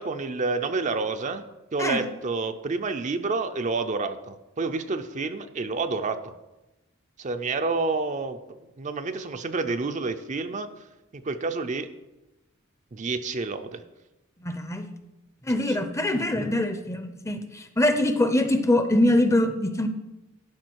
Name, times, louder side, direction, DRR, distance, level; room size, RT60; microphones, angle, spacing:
voice 1, 0.0-1.5 1.7-6.3 7.2-8.4 8.8-10.7 11.1-11.9 12.9-13.8, right 3 dB, 40° right, 8 dB, 0.5 m, -29 dB
voice 2, 14.4-14.8 15.4-19.9, left 1 dB, 15° left, 9 dB, 0.6 m, -23 dB
12.0 x 5.6 x 4.7 m, 1.0 s
head